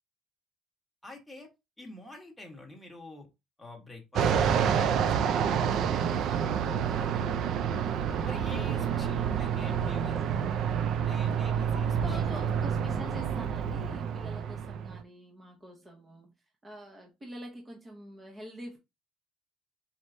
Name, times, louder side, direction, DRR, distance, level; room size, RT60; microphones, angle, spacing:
voice 1, 1.0-1.5 1.8-3.3 3.6-6.1 8.2-10.2 11.0-12.5, left 2 dB, ahead, 1.1 m, -47 dB
Fixed-wing aircraft airplane, 4.1-15.0, right 8 dB, 55° right, 0.4 m, -28 dB
voice 2, 8.3-10.2 11.7-16.3 16.6-18.8, equal, 15° right, 0.8 m, -46 dB
4.2 x 3.3 x 2.6 m
cardioid pair, 145°, 0 cm